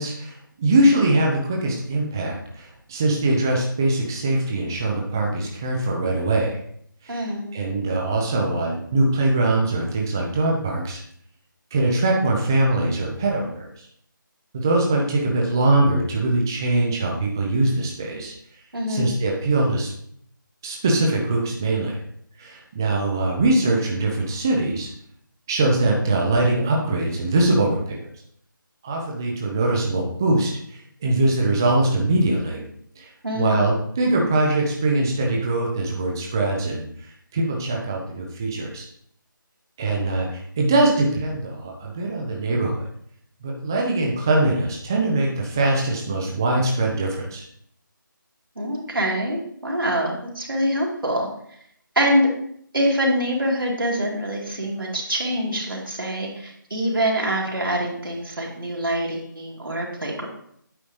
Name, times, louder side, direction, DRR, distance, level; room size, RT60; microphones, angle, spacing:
voice 1, 0.0-6.6 7.0-11.0 11.7-13.9 14.5-18.3 18.9-19.9 20.6-22.0 22.4-24.9 25.5-28.1 28.8-32.6 33.0-38.9 39.8-42.9 43.4-47.4, right 2 dB, 10° right, -1 dB, 0.4 m, -22 dB
voice 2, 7.1-7.5 18.7-19.1 33.2-33.7 48.6-51.3 52.0-52.3 52.7-60.3, equal, 85° right, -1 dB, 2.4 m, -24 dB
8.6 x 3.1 x 5.2 m, 0.67 s
figure-of-eight pair, 165°, 11 cm